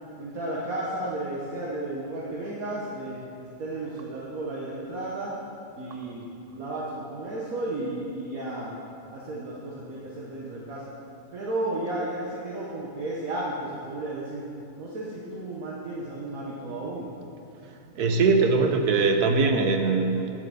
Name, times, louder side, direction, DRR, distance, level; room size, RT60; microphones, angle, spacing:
voice 1, 0.2-5.3 5.7-6.3 6.5-8.8 9.1-10.9 11.3-14.4 14.8-17.1, right 1 dB, 65° right, -5 dB, 1.7 m, -33 dB
voice 2, 17.9-20.3, right 4 dB, 85° right, 5 dB, 1.5 m, -21 dB
9.8 x 7.6 x 6.9 m, 2.8 s
omnidirectional pair, 1.6 m